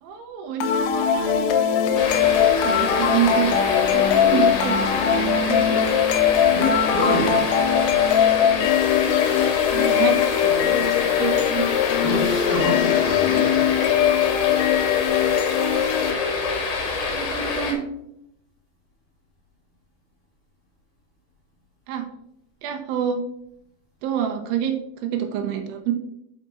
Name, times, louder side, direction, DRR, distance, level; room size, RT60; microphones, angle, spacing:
voice 1, 0.0-2.0 2.6-4.8 5.5-5.8 9.7-11.7 17.1-17.8 21.9-22.0 22.6-23.2 24.0-24.7 25.0-25.9, right 9 dB, 75° right, 5 dB, 2.3 m, -27 dB
sound 1, 0.6-16.6, left 9 dB, 90° left, 2.9 m, -21 dB
binaural mountain stream and yellowhammer, 1.9-17.7, left 4 dB, 65° left, 2.1 m, -27 dB
voice 2, 6.5-7.5 12.0-13.6, left 2 dB, 30° left, -3 dB, 1.8 m, -26 dB
6.0 x 5.8 x 4.2 m, 0.76 s
omnidirectional pair, 5.2 m